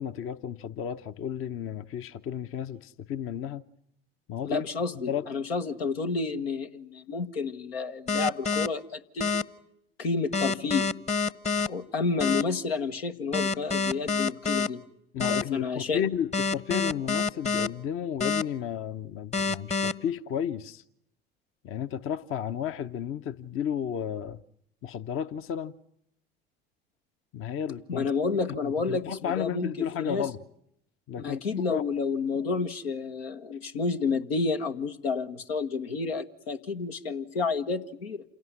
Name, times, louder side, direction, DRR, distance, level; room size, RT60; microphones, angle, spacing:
voice 1, 0.0-3.6 4.3-4.6 5.1-5.3 15.1-20.8 21.6-24.4 24.8-25.7 27.3-28.1 28.6-30.4 31.1-31.4 31.7-31.8, left 9 dB, 45° left, 0.9 m, -33 dB
voice 2, 4.4-9.3 10.0-10.9 11.7-14.8 15.3-16.0 27.9-30.3 31.2-38.2, left 4 dB, 85° left, 1.4 m, -30 dB
sound 1, 8.1-8.7 9.2-9.4 10.3-11.7 12.2-12.4 13.3-14.7 15.2-15.4 16.3-17.7 18.2-18.4 19.3-19.9, left 4 dB, 20° left, 1.0 m, -26 dB
28.0 x 17.5 x 9.8 m
hypercardioid pair, 70°, 30 cm